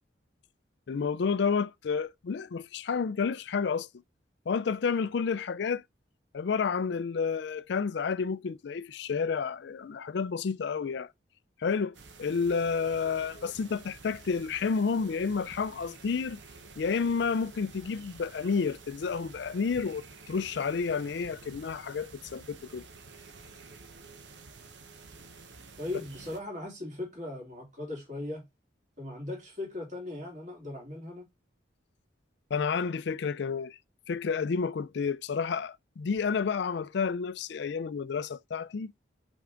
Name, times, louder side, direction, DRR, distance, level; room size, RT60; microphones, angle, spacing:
voice 1, 0.9-3.9 4.5-5.8 6.3-11.1 11.6-16.4 16.8-22.8 32.5-33.8 34.1-38.9, left 5 dB, 65° left, 0.4 m, -30 dB
sound 1, 11.9-26.4, right 4 dB, 70° right, 1.0 m, -50 dB
voice 2, 25.8-28.4 29.0-31.3, left 2 dB, 40° right, 2.8 m, -38 dB
6.2 x 5.6 x 3.7 m
head